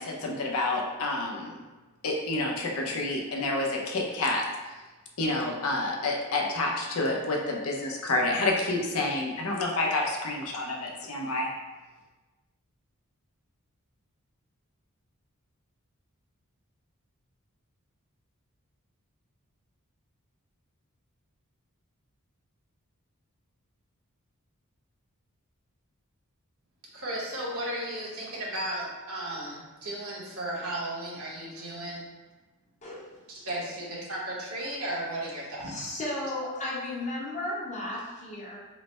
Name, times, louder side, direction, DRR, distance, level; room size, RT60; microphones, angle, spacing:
voice 1, 0.0-1.6 2.0-4.7 5.2-11.5, left 2 dB, 70° left, -1 dB, 0.6 m, -29 dB
voice 2, 26.9-32.0 33.3-36.0, right 1 dB, 70° right, -5 dB, 1.0 m, -35 dB
voice 3, 32.8-33.1 35.6-38.6, left 1 dB, 35° left, -6 dB, 0.9 m, -34 dB
3.2 x 2.1 x 4.2 m, 1.2 s
head